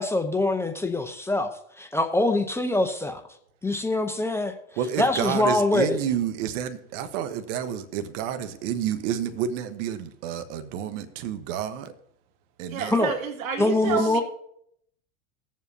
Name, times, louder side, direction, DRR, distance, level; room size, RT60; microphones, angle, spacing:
voice 1, 0.0-3.2 3.6-4.5 5.0-6.0 12.9-13.1 13.6-14.2, left 2 dB, 5° left, 0.7 m, -24 dB
voice 2, 4.8-11.9 12.6-12.9 13.8-14.2, right 9 dB, 60° right, 1.1 m, -30 dB
voice 3, 12.7-14.2, right 7 dB, 85° right, 2.1 m, -29 dB
19.0 x 7.4 x 2.8 m
hypercardioid pair, 110°, 40 cm